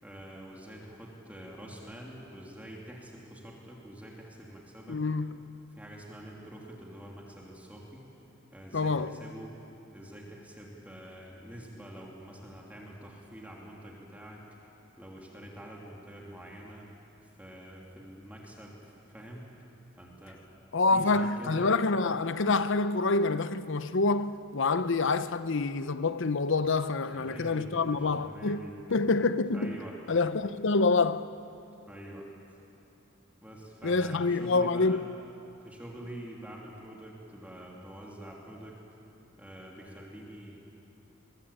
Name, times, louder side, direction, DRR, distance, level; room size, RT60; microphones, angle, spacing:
voice 1, 0.0-5.0 5.7-8.1 8.5-9.5 9.9-14.4 15.0-16.9 17.2-19.5 20.0-20.4 20.9-21.7 27.1-28.7 29.5-30.0 31.9-32.6 33.4-35.0 35.6-38.8 39.4-40.6, right 1 dB, 10° right, 3.0 m, -46 dB
voice 2, 4.9-5.5 8.7-9.2 20.7-28.6 28.9-29.8 30.1-31.3 33.8-35.0, left 3 dB, 65° left, 0.8 m, -27 dB
23.0 x 22.5 x 8.7 m
head